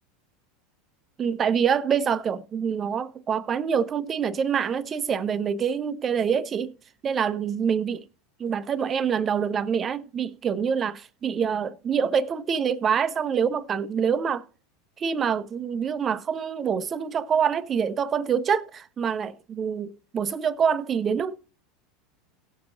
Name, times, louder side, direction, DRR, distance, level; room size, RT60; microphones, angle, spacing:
voice 1, 1.2-6.7 7.0-8.0 8.4-14.4 15.0-21.4, right 7 dB, 30° right, 0.7 m, -26 dB
18.0 x 6.9 x 2.6 m
figure-of-eight pair, 75°, 0 cm